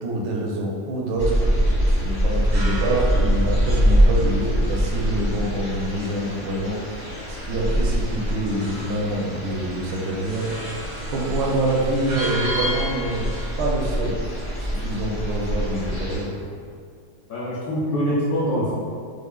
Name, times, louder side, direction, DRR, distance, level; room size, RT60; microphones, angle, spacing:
voice 1, 0.0-13.3 13.6-14.1 14.6-16.5, right 1 dB, 75° right, -1 dB, 1.1 m, -26 dB
sound 1, 1.2-16.2, equal, 15° left, 0.4 m, -24 dB
sound 2, 2.2-13.5, equal, 90° right, 1.7 m, -36 dB
voice 2, 17.3-18.8, equal, 65° left, -9 dB, 0.9 m, -24 dB
4.8 x 2.3 x 2.2 m, 2.2 s
omnidirectional pair, 2.1 m